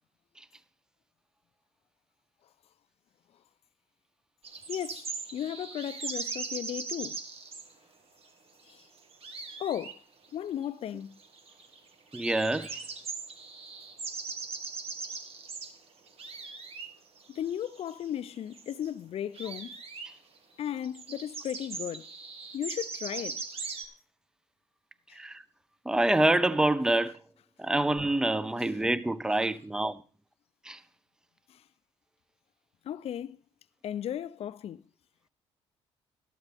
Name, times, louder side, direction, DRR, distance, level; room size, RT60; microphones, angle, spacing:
sound 1, 4.4-7.7 8.7-8.8 9.0-9.9 10.2-10.3 10.6-10.7 11.2-11.8 12.1-15.8 16.1-16.9 17.2-18.1 18.4-18.9 19.3-20.1 20.5-20.6 20.8-23.8, right 4 dB, 55° right, 1.7 m, -40 dB
voice 1, 4.7-5.0 5.3-7.2 9.6-10.0 10.3-11.1 17.3-19.7 20.6-22.0 22.5-23.4 32.9-33.4 33.8-34.8, left 10 dB, 55° left, 0.5 m, -35 dB
voice 2, 12.1-12.8 25.1-25.4 25.9-27.1 27.6-30.0 30.7-30.8, right 1 dB, 5° right, 0.6 m, -26 dB
13.0 x 12.0 x 3.5 m
supercardioid pair, 70°, 12 cm